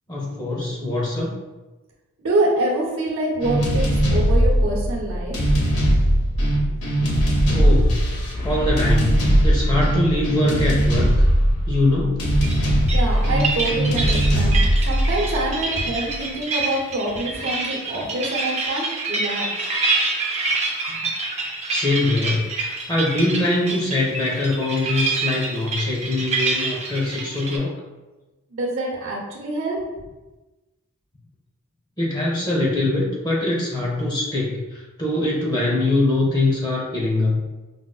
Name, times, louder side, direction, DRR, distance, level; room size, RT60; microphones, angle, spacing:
voice 1, 0.1-1.3 7.5-8.0 8.4-11.3 11.7-12.3 21.7-27.7 32.0-37.4, left 2 dB, 20° left, -4 dB, 0.7 m, -23 dB
voice 2, 2.2-5.4 12.9-19.5 28.5-29.8, right 1 dB, 65° right, -3 dB, 0.8 m, -25 dB
sound 1, 3.4-16.1, equal, 80° left, 0.7 m, -19 dB
sound 2, 12.4-27.6, right 3 dB, 30° right, 0.5 m, -27 dB
4.9 x 2.0 x 2.3 m, 1.1 s
head